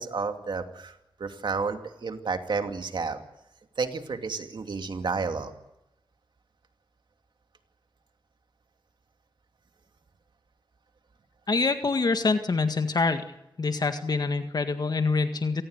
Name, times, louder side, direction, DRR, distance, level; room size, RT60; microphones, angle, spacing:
voice 1, 0.0-3.2 3.8-5.5, right 4 dB, 65° right, 6 dB, 2.6 m, -31 dB
voice 2, 11.5-13.2 13.6-15.6, left 4 dB, 55° left, 8 dB, 1.8 m, -25 dB
26.5 x 19.0 x 8.2 m, 0.87 s
wide cardioid pair, 75°, 8 cm